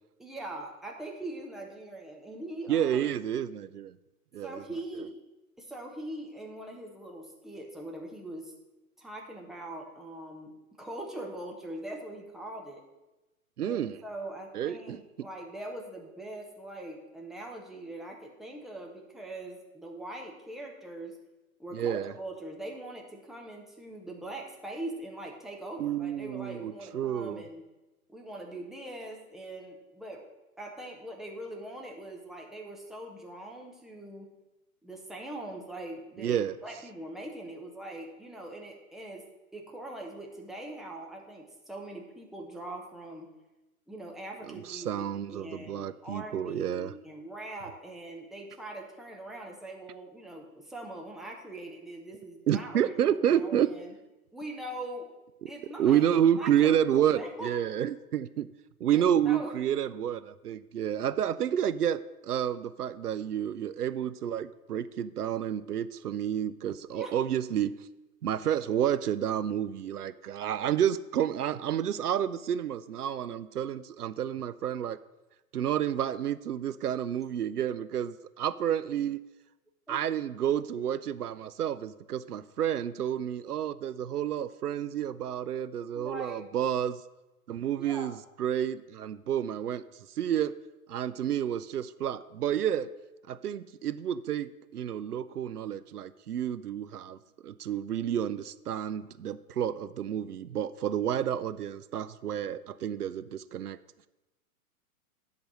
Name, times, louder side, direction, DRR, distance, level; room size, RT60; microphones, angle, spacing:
voice 1, 0.2-3.0 4.4-5.2 5.6-8.5 9.0-12.8 13.6-21.2 21.6-27.6 28.1-30.3 30.6-34.3 34.8-39.3 39.5-43.3 43.9-45.0 45.3-53.9 54.3-55.1 55.4-57.7 58.9-59.5 66.9-67.2 79.9-80.0 85.9-86.4 87.8-88.1, right 1 dB, ahead, 0 dB, 0.7 m, -42 dB
voice 2, 2.7-4.0 4.3-4.6 13.6-14.0 14.5-15.0 21.7-22.1 25.8-27.4 36.2-36.6 44.5-46.9 52.5-53.7 55.8-58.5 58.8-67.8 68.2-75.0 75.5-79.2 79.9-87.0 87.5-89.8 90.2-90.5 90.9-92.9 93.3-103.8, right 10 dB, 85° right, 14 dB, 0.5 m, -30 dB
10.5 x 4.1 x 6.2 m, 1.0 s
figure-of-eight pair, 115°, 45 cm